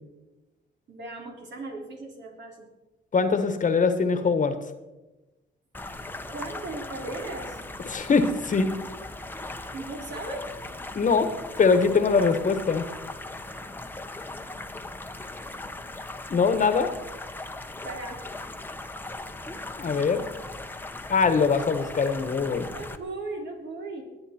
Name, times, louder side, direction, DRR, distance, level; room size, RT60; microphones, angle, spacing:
voice 1, 0.9-2.7 6.3-7.6 9.7-10.6 17.8-18.2 22.7-24.0, right 2 dB, 65° right, 1 dB, 3.5 m, -37 dB
voice 2, 3.1-4.6 7.9-8.7 10.9-11.3 11.6-12.9 16.3-16.9 19.8-20.2 21.1-22.7, left 5 dB, 40° left, 9 dB, 1.4 m, -22 dB
sound 1, 5.7-23.0, left 2 dB, 10° left, 1.0 m, -39 dB
20.0 x 8.9 x 4.4 m, 1.1 s
cardioid pair, 90°, 20 cm